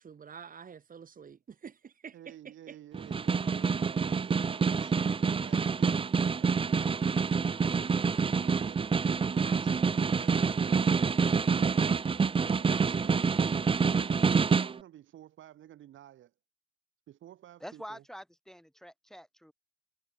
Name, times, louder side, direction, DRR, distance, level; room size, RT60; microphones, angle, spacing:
voice 1, 0.0-2.1 2.7-2.8, right 7 dB, 45° right, 2.9 m, -48 dB
voice 2, 2.1-4.9 8.3-8.9 9.3-13.2 13.9-16.3 17.1-18.0, right 12 dB, 75° right, 4.9 m, -52 dB
Snare drum, 2.9-14.8, right 5 dB, 25° right, 0.7 m, -27 dB
voice 3, 17.6-19.5, equal, ahead, 2.4 m, -46 dB
cardioid pair, 90°, 20 cm